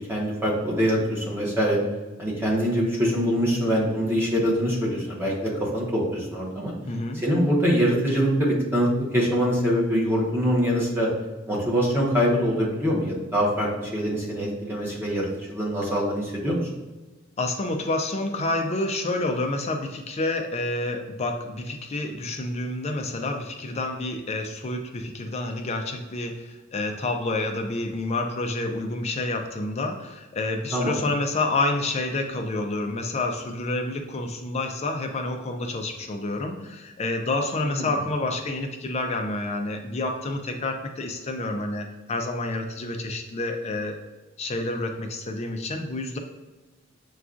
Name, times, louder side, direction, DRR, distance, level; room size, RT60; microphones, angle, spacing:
voice 1, 0.1-1.8 2.2-6.7 7.1-11.1 11.5-16.6 30.7-31.0 37.6-37.9, equal, 10° right, -4 dB, 1.0 m, -24 dB
voice 2, 6.9-7.2 17.4-44.0 44.4-46.2, left 2 dB, 35° left, 4 dB, 0.4 m, -29 dB
6.9 x 2.3 x 2.5 m, 1.2 s
head